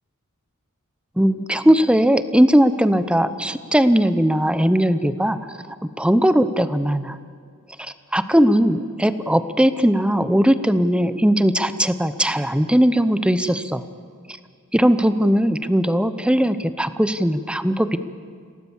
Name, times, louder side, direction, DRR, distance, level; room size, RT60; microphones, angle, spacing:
voice 1, 1.2-5.4 6.0-7.2 7.8-13.8 14.7-18.0, equal, 5° right, 12 dB, 0.8 m, -19 dB
27.5 x 17.5 x 7.3 m, 2.1 s
head